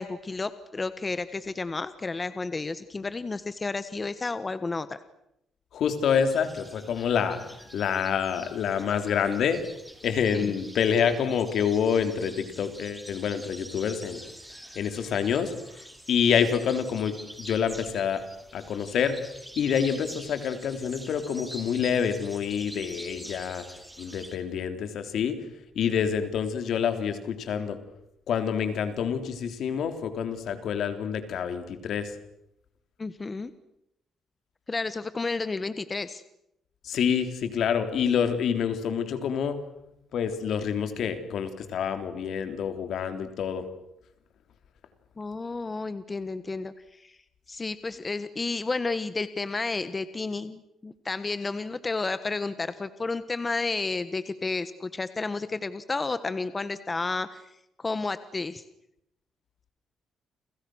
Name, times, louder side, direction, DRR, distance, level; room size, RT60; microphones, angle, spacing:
voice 1, 0.0-5.0 10.3-10.5 33.0-33.5 34.7-36.2 45.2-46.7 47.0-47.1 47.5-57.4 57.8-58.6, left 3 dB, 25° left, 13 dB, 1.4 m, -31 dB
voice 2, 5.7-7.4 7.7-9.6 10.0-14.2 14.8-15.5 16.1-18.2 18.5-19.2 19.6-23.6 24.0-25.4 25.8-27.8 28.3-32.1 36.8-39.6 40.1-43.6, left 7 dB, 70° left, 8 dB, 3.5 m, -27 dB
sound 1, 6.0-24.4, equal, ahead, 4.9 m, -46 dB
30.0 x 27.0 x 6.4 m, 0.81 s
cardioid pair, 90°, 0 cm